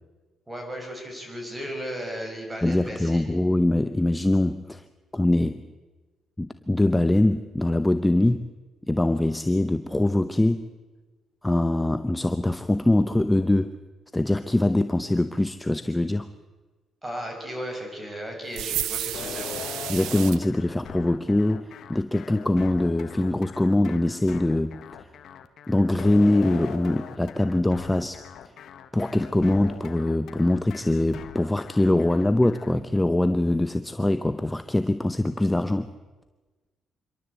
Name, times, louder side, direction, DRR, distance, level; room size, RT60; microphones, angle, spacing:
voice 1, 0.5-3.3 17.0-19.6, equal, 10° right, 2 dB, 6.6 m, -35 dB
voice 2, 2.6-4.9 5.1-5.7 6.4-8.5 8.9-10.7 11.4-13.8 14.1-16.3 19.9-25.1 25.7-28.2 28.9-35.9, left 1 dB, 10° left, 11 dB, 0.8 m, -23 dB
sound 1, 18.5-20.4, right 12 dB, 90° right, 0.9 m, -31 dB
sound 2, 19.1-32.7, left 8 dB, 70° left, 1.4 m, -41 dB
26.5 x 12.0 x 8.2 m, 1.3 s
cardioid pair, 90°, 0 cm